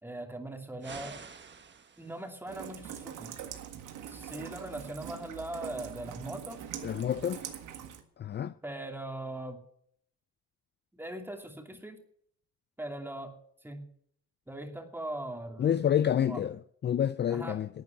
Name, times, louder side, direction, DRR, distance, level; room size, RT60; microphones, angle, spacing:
voice 1, 0.0-1.2 2.0-3.3 4.1-6.6 8.6-9.6 10.9-12.0 12.8-13.3 13.6-13.9 14.5-15.9 16.2-16.4 17.3-17.6, right 1 dB, 5° right, 2.7 m, -40 dB
sound 1, 0.8-2.4, right 5 dB, 35° right, 1.4 m, -48 dB
Rain, 2.5-8.0, right 9 dB, 90° right, 1.7 m, -43 dB
voice 2, 6.8-7.4 8.2-8.5 15.6-17.7, left 9 dB, 35° left, 0.4 m, -28 dB
12.0 x 9.1 x 8.5 m
cardioid pair, 90°, 30 cm